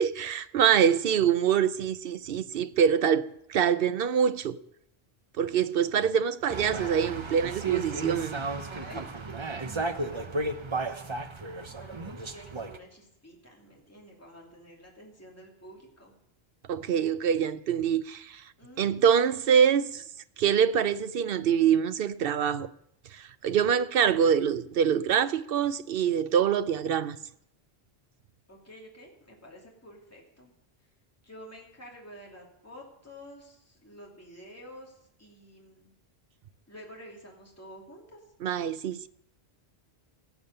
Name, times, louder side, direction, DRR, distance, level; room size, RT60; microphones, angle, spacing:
voice 1, 0.0-4.6 5.4-8.4 16.7-18.4 18.8-20.0 20.4-22.7 23.1-27.2 38.4-39.1, right 8 dB, 65° right, 0.8 m, -25 dB
sound 1, 6.5-12.8, right 3 dB, 30° right, 0.8 m, -34 dB
voice 2, 8.5-10.9 11.7-16.1 18.6-20.0 28.5-30.5 31.2-35.9 36.7-38.2, equal, 15° left, 2.7 m, -50 dB
17.5 x 7.1 x 6.7 m
omnidirectional pair, 1.1 m